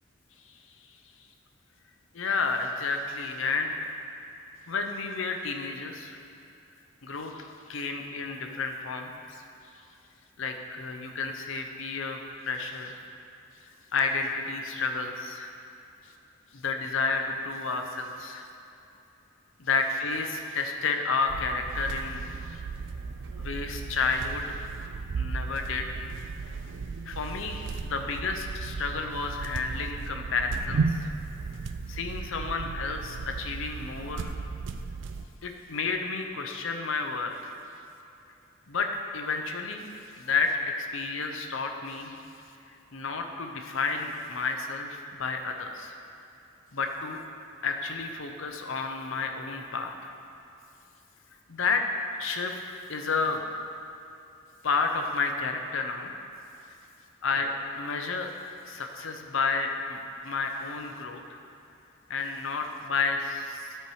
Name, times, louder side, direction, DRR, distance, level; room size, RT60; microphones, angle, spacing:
voice 1, 2.1-3.8 4.7-6.2 7.0-9.1 10.4-13.0 13.9-15.5 16.5-18.5 19.6-22.6 23.4-24.6 25.2-26.0 27.1-31.1 31.9-34.3 35.4-37.5 38.7-39.9 40.2-42.2 42.9-46.0 46.7-47.2 47.6-50.1 51.5-51.9 52.2-52.6 52.9-53.5 54.6-56.1 57.2-58.3 58.6-61.2 62.1-63.7, left 4 dB, 70° left, 4 dB, 0.7 m, -31 dB
sound 1, 21.3-35.3, right 4 dB, 60° right, 0.3 m, -35 dB
9.7 x 4.5 x 4.8 m, 2.9 s
head